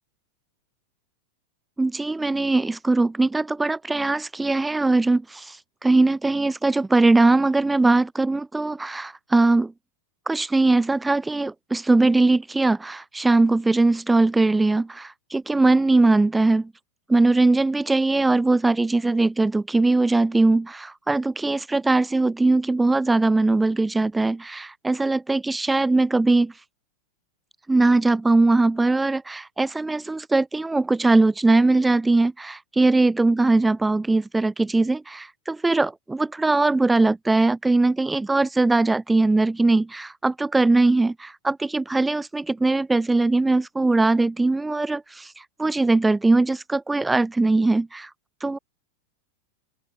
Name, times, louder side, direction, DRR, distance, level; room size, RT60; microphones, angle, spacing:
voice 1, 1.8-5.6 5.8-9.7 10.3-16.7 17.1-26.5 27.7-45.3 45.6-48.1 48.4-48.6, right 2 dB, 10° right, 0.3 m, -20 dB
open air
figure-of-eight pair, 90°, 0 cm